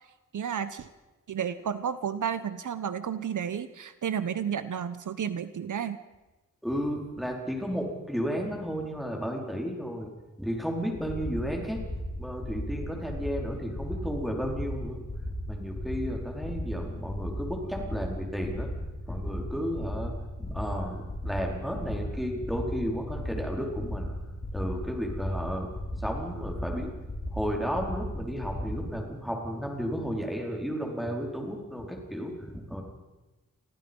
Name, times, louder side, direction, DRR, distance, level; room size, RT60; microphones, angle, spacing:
voice 1, 0.3-0.9 1.3-6.0, right 8 dB, 70° right, 12 dB, 1.1 m, -32 dB
voice 2, 6.6-10.1 10.4-11.8 12.2-15.0 15.5-18.7 19.1-20.1 20.4-24.2 24.5-25.7 25.9-26.9 27.3-32.8, equal, ahead, 0 dB, 4.7 m, -33 dB
sound 1, 10.9-28.8, left 1 dB, 30° left, 7.1 m, -36 dB
29.5 x 24.5 x 5.5 m, 1.1 s
wide cardioid pair, 170°, 31 cm